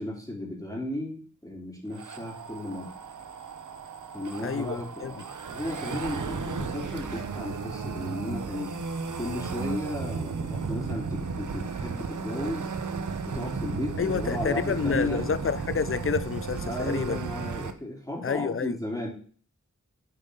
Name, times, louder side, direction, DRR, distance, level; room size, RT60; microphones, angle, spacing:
voice 1, 0.0-2.9 4.1-8.8 9.2-12.7 13.2-15.3 16.7-19.1, left 1 dB, 10° left, 3.4 m, -34 dB
sound 1, 1.9-17.7, right 5 dB, 75° right, 0.9 m, -34 dB
voice 2, 4.4-4.8 5.0-5.1 14.0-17.2 18.2-18.8, left 6 dB, 45° left, 0.5 m, -29 dB
9.4 x 5.2 x 3.9 m
cardioid pair, 40°, 31 cm